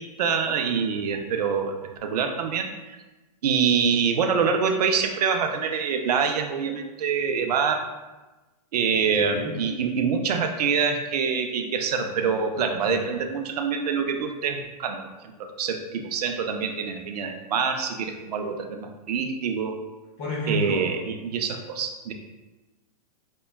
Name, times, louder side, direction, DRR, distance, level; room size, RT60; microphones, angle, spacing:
voice 1, 0.0-3.0 3.4-7.8 8.7-15.1 15.4-19.8 20.5-22.1, right 6 dB, 85° right, 5 dB, 0.5 m, -25 dB
voice 2, 8.9-9.5 12.6-13.0 20.2-21.0, left 2 dB, 15° left, -3 dB, 0.3 m, -31 dB
5.2 x 2.2 x 2.2 m, 1.1 s
supercardioid pair, 175°, 20 cm